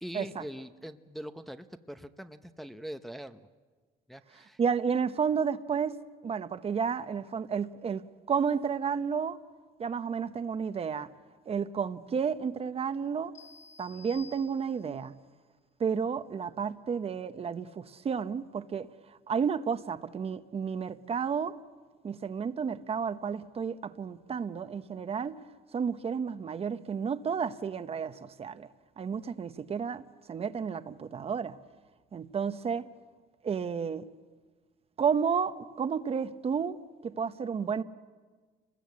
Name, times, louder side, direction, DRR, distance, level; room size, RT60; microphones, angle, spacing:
voice 1, 0.0-3.5 4.1-4.6, equal, ahead, 0.8 m, -42 dB
voice 2, 4.6-6.0 6.2-9.4 9.8-11.1 11.5-13.3 13.8-15.1 15.8-18.9 19.3-21.6 22.0-25.4 25.7-28.7 29.0-31.6 32.1-32.9 33.4-34.0 35.0-36.8 37.0-37.8, right 6 dB, 35° right, 0.9 m, -31 dB
sound 1, 13.3-15.1, left 4 dB, 45° left, 3.2 m, -52 dB
29.5 x 20.5 x 8.4 m
cardioid pair, 110°, 17 cm